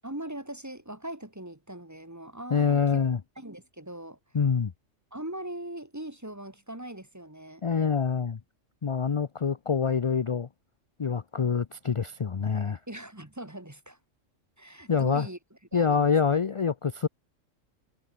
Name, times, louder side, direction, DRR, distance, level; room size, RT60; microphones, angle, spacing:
voice 1, 0.0-2.8 3.4-4.2 5.1-7.6 12.9-14.0 14.6-15.4 15.7-16.1, right 1 dB, 15° right, 1.8 m, -40 dB
voice 2, 2.5-3.2 4.3-4.7 7.6-8.4 8.8-10.5 11.0-12.8 14.9-15.3 15.7-17.1, left 6 dB, 40° left, 0.4 m, -26 dB
omnidirectional pair, 1.4 m